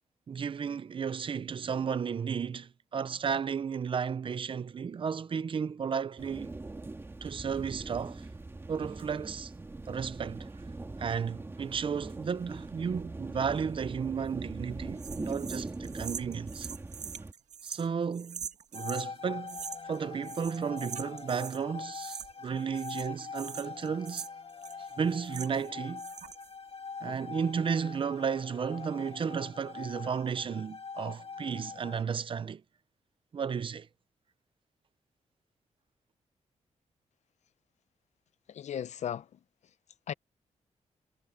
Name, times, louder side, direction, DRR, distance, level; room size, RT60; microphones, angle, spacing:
voice 1, 0.3-6.5 7.2-8.3 8.7-9.5 9.9-10.5 11.0-16.7 17.6-18.4 18.7-24.3 25.0-26.1 27.0-32.6 33.3-33.9, right 6 dB, 45° right, 0.6 m, -33 dB
sound 1, 6.2-17.3, right 2 dB, 20° right, 1.8 m, -41 dB
sound 2, 15.0-19.1 19.5-20.0 20.2-21.6 21.9-22.5 22.7-25.7 26.0-26.5, right 7 dB, 70° right, 1.8 m, -43 dB
sound 3, 18.7-32.0, left 5 dB, 50° left, 2.0 m, -43 dB
voice 2, 38.5-39.7 40.1-40.2, left 9 dB, 65° left, 0.6 m, -37 dB
wide cardioid pair, 155°, 13 cm